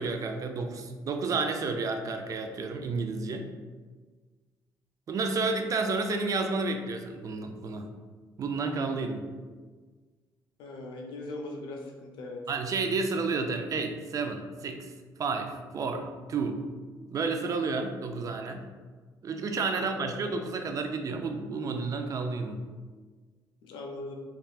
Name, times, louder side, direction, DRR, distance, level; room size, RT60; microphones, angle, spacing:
voice 1, 0.0-3.5 5.1-7.9 8.4-9.3 12.5-14.9 15.2-16.6 17.1-18.7 19.2-22.6, right 4 dB, 45° right, 5 dB, 0.4 m, -31 dB
voice 2, 10.6-12.4 19.8-19.9 23.6-24.1, left 2 dB, 80° left, 1 dB, 0.4 m, -40 dB
3.3 x 2.5 x 2.3 m, 1.4 s
cardioid pair, 85°, 8 cm